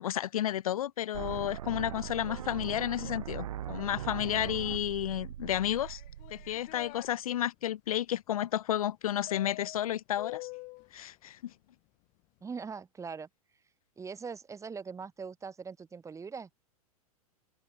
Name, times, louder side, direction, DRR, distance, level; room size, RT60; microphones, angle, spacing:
voice 1, 0.0-6.0 6.3-10.5 10.9-11.5, left 12 dB, 65° left, 0.8 m, -32 dB
sound 1, 1.1-7.1, right 11 dB, 65° right, 3.5 m, -40 dB
sound 2, 5.8-7.1 9.3-10.9, left 25 dB, 40° left, 1.4 m, -45 dB
voice 2, 12.4-13.3 14.0-16.5, right 5 dB, 15° right, 5.0 m, -41 dB
hypercardioid pair, 100°, 19 cm